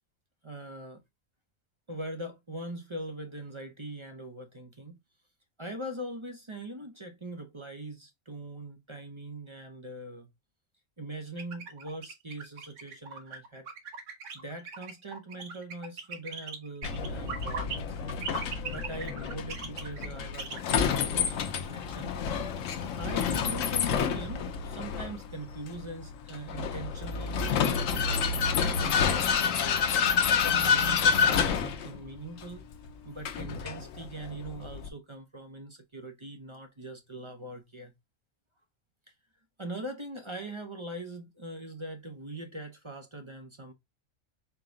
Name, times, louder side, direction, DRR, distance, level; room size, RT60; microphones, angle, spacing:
voice 1, 0.4-1.0 1.9-5.0 5.6-10.3 11.0-13.7 14.3-18.2 18.6-22.2 23.0-28.3 28.8-29.9 30.3-32.6 33.0-37.9 39.6-43.7, right 1 dB, 30° right, 0.6 m, -41 dB
sound 1, 11.4-17.8 18.1-20.6, right 5 dB, 75° right, 1.3 m, -39 dB
Vehicle, 16.8-34.9, left 6 dB, 90° left, 1.1 m, -29 dB
4.7 x 2.2 x 3.7 m
omnidirectional pair, 1.3 m